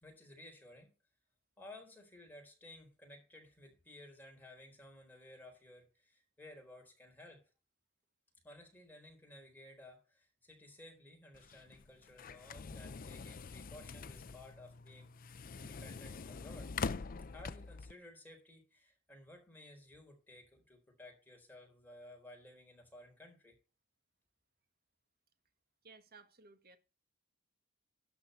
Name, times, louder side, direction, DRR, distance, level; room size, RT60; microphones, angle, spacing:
voice 1, 0.0-0.9 1.6-7.4 8.4-15.1 15.5-16.8 17.3-23.6, left 1 dB, 10° left, 4.1 m, -56 dB
sound 1, 11.3-17.9, left 5 dB, 40° left, 0.5 m, -44 dB
voice 2, 25.8-26.8, right 4 dB, 45° right, 1.5 m, -58 dB
12.5 x 4.4 x 8.1 m
head